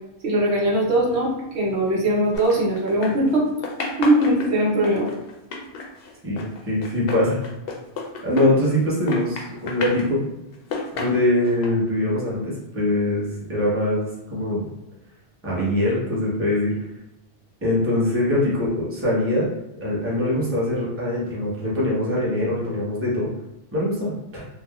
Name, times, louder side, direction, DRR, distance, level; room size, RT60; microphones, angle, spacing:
voice 1, 0.2-3.5 4.0-5.1, right 1 dB, 70° right, -3 dB, 0.9 m, -20 dB
sound 1, 2.3-3.4 3.6-8.8 9.1-10.1 10.5-11.7, left 4 dB, 65° left, 0.7 m, -32 dB
voice 2, 6.2-7.4 8.2-10.3 10.9-14.7 15.4-16.7 17.6-19.5 19.8-23.3 23.7-24.5, left 1 dB, 15° right, -6 dB, 0.7 m, -23 dB
3.3 x 2.1 x 2.2 m, 0.96 s
omnidirectional pair, 1.2 m